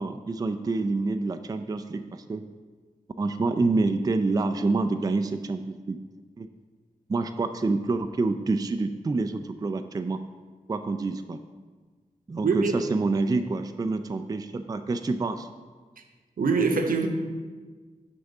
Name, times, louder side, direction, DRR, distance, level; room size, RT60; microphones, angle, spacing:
voice 1, 0.0-2.4 3.2-6.0 6.4-6.5 7.1-10.2 10.7-11.4 12.3-15.5, right 3 dB, 25° right, 9 dB, 0.3 m, -27 dB
voice 2, 16.4-17.1, right 4 dB, 80° right, 5 dB, 0.9 m, -23 dB
9.1 x 3.5 x 6.5 m, 1.4 s
wide cardioid pair, 105°, 14 cm